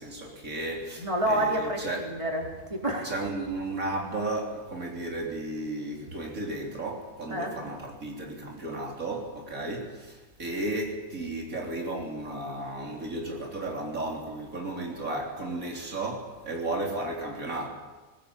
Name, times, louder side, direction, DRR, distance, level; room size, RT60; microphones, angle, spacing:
voice 1, 0.0-2.0 3.0-17.7, right 2 dB, 80° right, 0 dB, 3.9 m, -34 dB
voice 2, 1.0-3.1 7.3-7.5, right 1 dB, 20° right, -1 dB, 4.3 m, -29 dB
21.0 x 20.0 x 8.6 m, 1.2 s
omnidirectional pair, 1.4 m